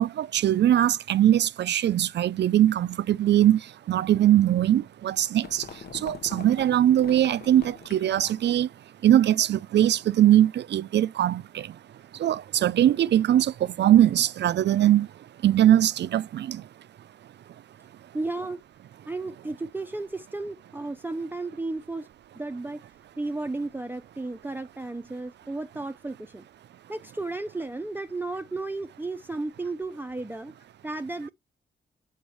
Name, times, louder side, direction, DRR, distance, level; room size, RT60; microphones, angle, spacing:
voice 1, 0.0-3.6 3.9-5.6 6.0-8.7 9.0-11.7 12.2-15.1 15.4-16.6, right 11 dB, 65° right, 0.4 m, -21 dB
sound 1, 4.8-8.5, left 7 dB, 55° left, 0.7 m, -43 dB
voice 2, 18.1-18.6 19.1-22.1 22.3-22.8 23.2-26.4 26.9-30.5 30.8-31.3, right 2 dB, 10° right, 0.5 m, -33 dB
7.9 x 3.1 x 5.3 m
cardioid pair, 70°, 19 cm